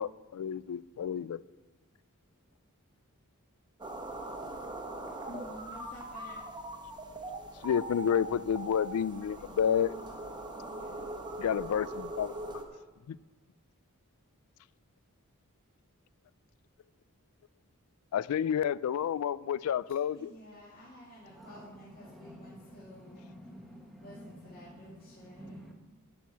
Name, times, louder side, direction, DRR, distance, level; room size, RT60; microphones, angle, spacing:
voice 1, 0.0-1.4 7.6-9.9 11.4-12.4 13.1-13.2 18.1-20.3, left 8 dB, 75° left, 0.3 m, -30 dB
sound 1, 3.8-12.6, right 1 dB, 20° right, 1.0 m, -41 dB
voice 2, 5.3-6.4 10.7-11.1 20.2-23.3 24.0-25.6, equal, 40° left, 2.4 m, -51 dB
voice 3, 21.3-25.7, equal, ahead, 1.2 m, -51 dB
11.5 x 6.2 x 5.8 m
head